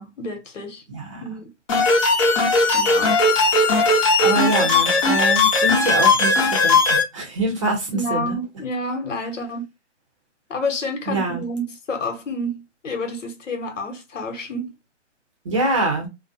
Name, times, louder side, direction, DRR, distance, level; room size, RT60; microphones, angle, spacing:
voice 1, 0.0-0.8 1.2-1.5 2.7-3.2 4.6-4.8 7.9-9.6 10.5-14.7, left 1 dB, 80° left, 1.0 m, -29 dB
voice 2, 0.9-1.2 4.2-6.3 6.6-6.8 7.1-8.3 11.1-11.4 15.5-16.1, right 2 dB, 25° right, 0.7 m, -24 dB
sound 1, 1.7-7.0, left 3 dB, 25° left, 0.7 m, -18 dB
2.3 x 2.1 x 2.6 m
hypercardioid pair, 150°, 37 cm